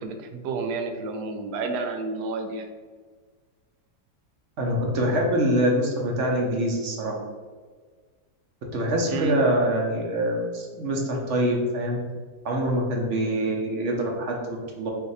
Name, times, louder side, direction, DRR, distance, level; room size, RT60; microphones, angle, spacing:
voice 1, 0.0-2.7 9.1-9.4, right 3 dB, 80° right, 5 dB, 1.1 m, -30 dB
voice 2, 4.6-7.2 8.7-12.0 12.4-14.9, right 1 dB, 55° right, -1 dB, 0.9 m, -25 dB
3.9 x 2.6 x 4.0 m, 1.5 s
omnidirectional pair, 1.8 m